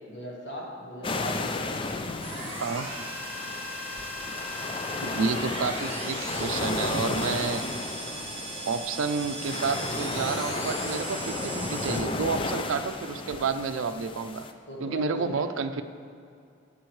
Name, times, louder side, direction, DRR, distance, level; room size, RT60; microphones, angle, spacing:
voice 1, 0.1-1.9 14.7-15.6, equal, 65° left, -3 dB, 1.5 m, -38 dB
sound 1, 1.0-14.5, left 3 dB, 25° left, 0.3 m, -33 dB
sound 2, 2.2-12.0, right 2 dB, 30° right, 1.5 m, -38 dB
voice 2, 5.0-7.6 8.7-14.4 14.8-15.8, right 5 dB, 90° right, 9 dB, 0.5 m, -30 dB
11.5 x 8.5 x 3.2 m, 2.4 s
head